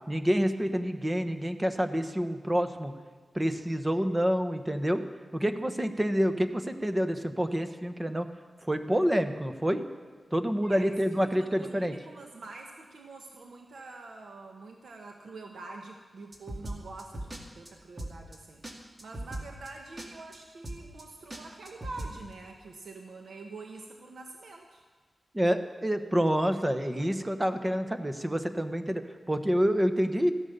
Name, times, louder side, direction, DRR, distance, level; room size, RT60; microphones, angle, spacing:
voice 1, 0.1-2.9 3.3-5.0 5.3-8.3 8.7-9.8 10.3-11.9 25.3-30.3, equal, 15° right, 8 dB, 1.1 m, -28 dB
voice 2, 10.6-24.8, right 3 dB, 85° right, 2 dB, 1.1 m, -46 dB
sound 1, 16.3-17.4 17.7-17.8 18.0-18.4 18.6-18.7 19.0-19.7 20.0-20.1 20.3-20.4 20.6-21.0 21.3-22.1, right 1 dB, 35° right, 2.2 m, -39 dB
14.5 x 11.0 x 6.7 m, 1.5 s
wide cardioid pair, 75°, 0 cm